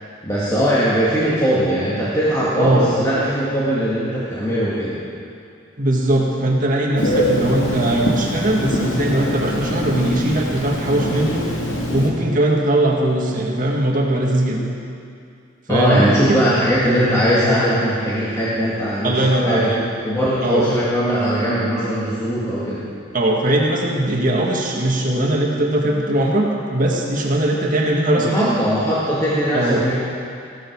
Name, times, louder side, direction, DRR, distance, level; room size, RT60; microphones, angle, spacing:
voice 1, 0.2-5.0 9.1-9.3 15.7-19.7 20.0-22.9 28.2-29.9, equal, 15° left, -9 dB, 2.0 m, -20 dB
voice 2, 2.6-2.9 5.8-11.5 11.9-14.6 15.7-16.4 19.0-19.8 20.4-20.7 23.1-28.5 29.5-29.9, right 1 dB, 40° right, -1 dB, 1.9 m, -19 dB
Telephone, 7.0-12.1, equal, 85° left, 2.3 m, -23 dB
16.0 x 13.0 x 4.8 m, 2.5 s
head